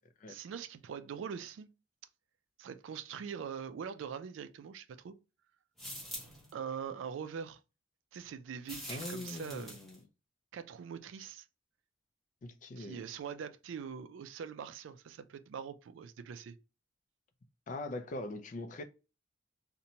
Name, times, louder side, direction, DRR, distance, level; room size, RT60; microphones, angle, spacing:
voice 1, 0.3-1.7 2.6-5.1 6.5-7.6 8.1-9.8 10.5-11.5 12.8-16.6, right 7 dB, 85° right, 0.3 m, -43 dB
sound 1, 5.8-6.5 8.6-10.0, equal, ahead, 1.0 m, -45 dB
voice 2, 8.9-10.0 12.4-13.0 17.7-18.8, left 2 dB, 40° left, 0.4 m, -42 dB
2.6 x 2.1 x 2.8 m
head